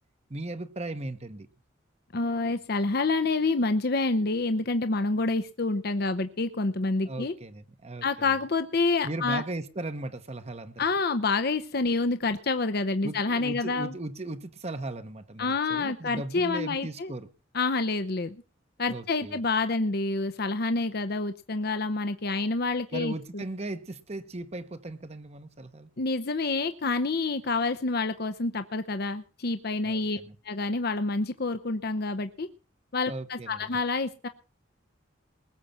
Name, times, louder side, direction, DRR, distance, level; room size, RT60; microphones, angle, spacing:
voice 1, 0.3-1.5 7.0-8.3 9.0-10.8 13.0-17.3 18.9-19.4 22.9-25.9 29.8-30.4 33.1-33.7, right 2 dB, 35° right, 1.0 m, -37 dB
voice 2, 2.1-7.3 8.0-9.4 10.8-13.9 15.4-17.1 17.5-18.4 18.8-23.4 26.0-30.2 30.5-32.5 32.9-34.3, left 3 dB, 55° left, 0.8 m, -28 dB
20.5 x 7.7 x 5.7 m
head